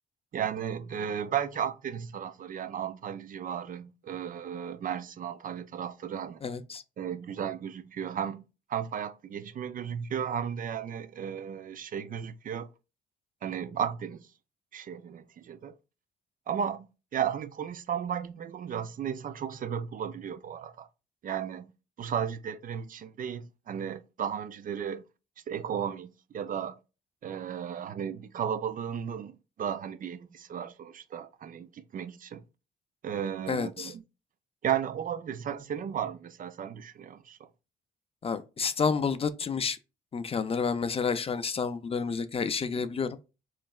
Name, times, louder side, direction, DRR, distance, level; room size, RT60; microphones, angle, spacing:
voice 1, 0.3-6.4 7.0-12.7 13.4-14.3 14.7-15.7 16.5-20.9 21.2-21.7 22.0-25.0 25.5-26.8 27.2-32.4 33.0-34.0 34.6-37.5, right 8 dB, 45° right, 0.4 m, -34 dB
voice 2, 6.4-6.8 33.5-33.9 38.2-39.8 40.1-43.1, left 5 dB, 30° left, 0.4 m, -30 dB
4.5 x 3.1 x 2.3 m
cardioid pair, 90°, 20 cm